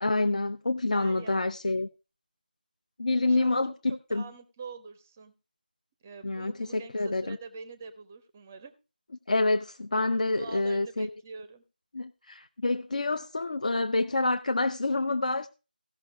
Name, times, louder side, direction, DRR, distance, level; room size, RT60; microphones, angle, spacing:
voice 1, 0.0-1.9 3.0-4.3 6.2-7.4 9.3-11.1 11.9-15.5, left 2 dB, 50° left, 0.5 m, -27 dB
voice 2, 0.9-1.5 3.2-3.6 4.1-5.3 6.0-8.7 10.3-11.6, right 5 dB, 15° right, 0.5 m, -45 dB
15.5 x 5.8 x 5.0 m
figure-of-eight pair, 170°, 5 cm